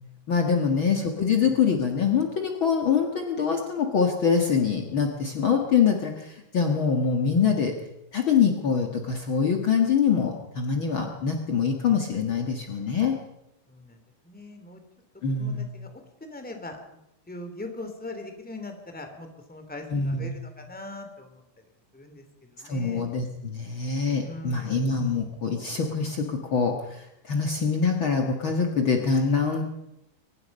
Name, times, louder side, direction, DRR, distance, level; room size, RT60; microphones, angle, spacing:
voice 1, 0.3-7.7 8.1-13.2 15.2-15.7 19.9-20.3 22.6-29.6, left 6 dB, 85° left, 3 dB, 1.1 m, -24 dB
voice 2, 13.7-14.8 15.3-17.0 17.3-21.4 21.9-23.1 24.2-24.9, left 2 dB, 5° left, 5 dB, 1.6 m, -41 dB
23.0 x 20.5 x 5.4 m, 0.84 s
omnidirectional pair, 5.2 m